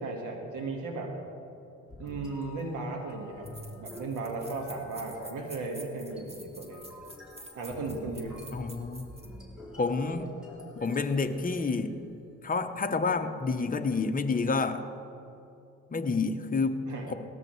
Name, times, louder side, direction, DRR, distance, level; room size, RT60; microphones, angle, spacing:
voice 1, 0.0-1.1 2.0-3.5 3.8-6.8 7.6-8.4 16.9-17.1, right 3 dB, 90° right, 1 dB, 1.8 m, -36 dB
sound 1, 1.9-12.2, left 1 dB, ahead, 3.1 m, -48 dB
sound 2, 3.4-9.3, right 1 dB, 20° right, 1.9 m, -48 dB
voice 2, 8.5-9.1 9.8-10.3 10.8-12.0 12.4-14.8 15.9-17.1, left 4 dB, 30° left, 7 dB, 0.9 m, -29 dB
18.5 x 13.5 x 3.2 m, 2.8 s
cardioid pair, 90°, 30 cm